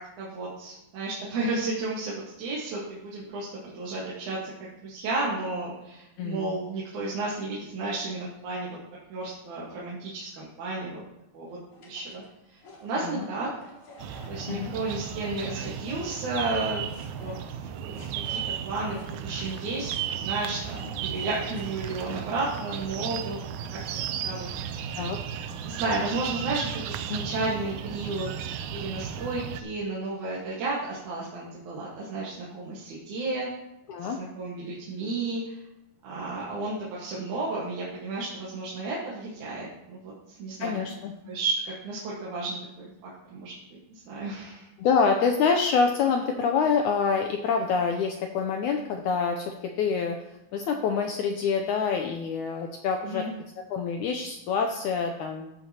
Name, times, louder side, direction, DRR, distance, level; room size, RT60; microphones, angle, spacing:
voice 1, 0.0-8.7 9.1-11.0 11.3-11.6 11.8-12.2 12.5-13.5 14.3-16.9 17.2-23.4 23.7-23.8 24.2-24.5 24.8-25.1 25.7-33.5 34.0-35.6 36.0-40.7 41.3-42.9 43.3-43.5 43.9-44.7 53.0-53.3, right 3 dB, 60° right, -6 dB, 2.8 m, -33 dB
voice 2, 6.2-6.5 13.0-13.3 14.5-14.7 25.0-25.2 27.1-27.2 33.9-34.2 40.6-41.1 44.8-50.2 50.5-53.2 53.7-55.5, left 5 dB, 80° left, 4 dB, 1.8 m, -26 dB
sound 1, 11.7-16.6 16.9-23.2, left 2 dB, 55° left, 3.6 m, -51 dB
sound 2, 14.0-29.6, right 8 dB, 85° right, 1.7 m, -35 dB
13.5 x 8.9 x 2.9 m, 0.90 s
omnidirectional pair, 4.2 m